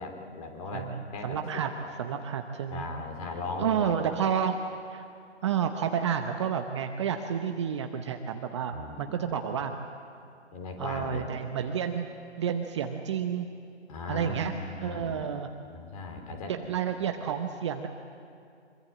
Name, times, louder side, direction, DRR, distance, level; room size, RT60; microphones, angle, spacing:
voice 1, 0.0-1.4 1.8-1.9 2.7-4.2 8.7-9.2 10.5-11.3 13.9-15.3 15.6-16.5, left 3 dB, 30° left, 4 dB, 3.8 m, -38 dB
voice 2, 1.2-1.7 2.0-2.9 3.6-4.6 4.9-5.1 5.4-9.8 10.8-12.1 12.4-13.5 14.1-14.5 14.8-15.5 16.5-17.9, right 8 dB, 25° right, 6 dB, 0.8 m, -30 dB
25.0 x 23.0 x 7.9 m, 2.5 s
figure-of-eight pair, 145°, 35 cm